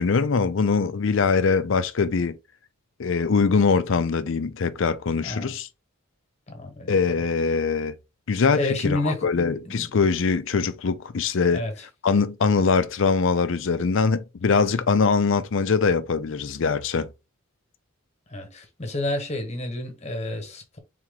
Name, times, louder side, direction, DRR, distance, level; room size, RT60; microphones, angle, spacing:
voice 1, 0.0-2.4 3.0-5.7 6.9-7.9 8.3-11.7 12.0-17.1, left 5 dB, 60° left, 0.5 m, -22 dB
voice 2, 5.2-5.5 6.5-7.0 8.6-9.3 9.7-9.9 11.5-11.7 18.3-20.8, left 2 dB, 30° left, 1.3 m, -29 dB
3.7 x 3.0 x 3.7 m
head